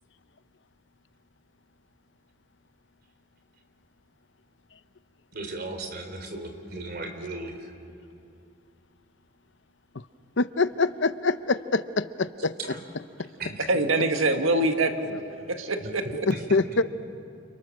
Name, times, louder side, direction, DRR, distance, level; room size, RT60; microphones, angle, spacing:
voice 1, 5.3-7.7 12.4-12.8 13.4-13.7 15.7-16.8, right 2 dB, 50° right, 5 dB, 3.4 m, -37 dB
voice 2, 10.4-12.3 16.3-16.8, left 3 dB, 65° left, 13 dB, 0.7 m, -24 dB
voice 3, 13.7-15.2 15.5-16.2, right 2 dB, 85° right, 6 dB, 1.6 m, -24 dB
29.5 x 29.0 x 6.5 m, 2.5 s
head